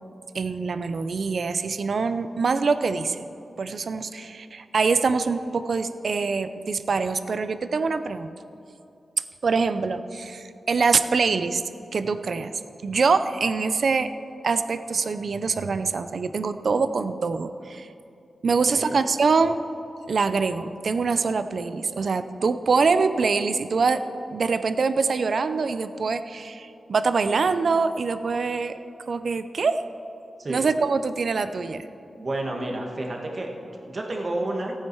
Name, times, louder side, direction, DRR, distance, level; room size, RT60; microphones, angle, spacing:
voice 1, 0.3-3.3 3.6-8.3 9.4-11.6 11.9-12.5 12.8-14.1 14.4-17.9 18.4-19.6 20.1-24.0 24.3-28.7 29.1-29.8 30.5-31.8, right 4 dB, 60° right, 11 dB, 0.5 m, -24 dB
voice 2, 32.2-34.7, right 1 dB, 40° right, 1 dB, 1.5 m, -30 dB
15.0 x 9.0 x 4.6 m, 2.8 s
wide cardioid pair, 105°, 0 cm